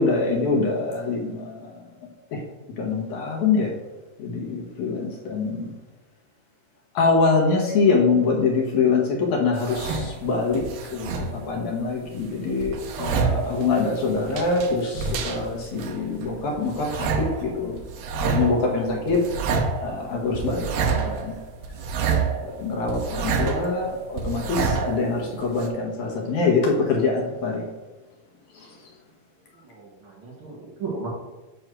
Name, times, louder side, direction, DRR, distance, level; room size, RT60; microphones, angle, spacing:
voice 1, 0.0-1.6 2.3-2.4 2.8-3.7 4.2-5.7 7.0-9.0 9.3-10.6 10.9-17.1 17.4-17.8 18.2-19.2 19.8-21.3 22.4-27.6, left 4 dB, 70° left, -1 dB, 2.3 m, -24 dB
sound 1, 9.6-11.6 11.9-25.7, right 5 dB, 80° right, 1.4 m, -28 dB
voice 2, 29.5-31.1, right 4 dB, 50° right, -5 dB, 2.0 m, -35 dB
7.9 x 3.1 x 6.0 m, 1.2 s
omnidirectional pair, 3.8 m